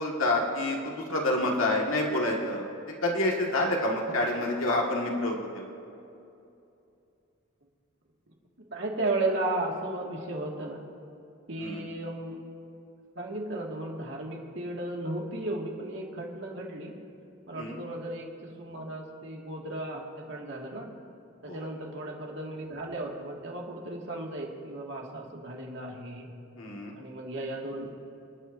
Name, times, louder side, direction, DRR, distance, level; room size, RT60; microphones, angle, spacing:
voice 1, 0.0-2.7 3.0-5.7 11.6-11.8 17.6-17.8 21.5-21.7 26.5-26.9, left 1 dB, 85° left, -1 dB, 1.9 m, -28 dB
voice 2, 8.7-10.8 11.5-12.5 13.2-17.0 17.5-20.9 21.4-26.3 27.0-27.9, right 2 dB, 65° right, -1 dB, 2.1 m, -35 dB
29.0 x 9.8 x 2.7 m, 2.7 s
head